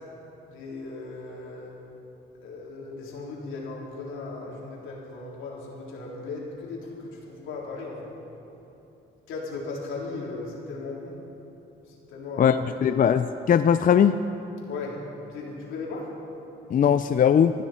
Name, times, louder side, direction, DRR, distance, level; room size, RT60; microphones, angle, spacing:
voice 1, 0.5-1.8 2.3-8.1 9.3-11.2 11.9-13.0 14.7-15.0 15.3-16.1, left 3 dB, 85° left, -3 dB, 3.9 m, -37 dB
voice 2, 12.8-14.2 16.7-17.5, left 8 dB, 45° left, 10 dB, 0.5 m, -19 dB
20.5 x 15.0 x 4.5 m, 2.9 s
cardioid pair, 90°, 20 cm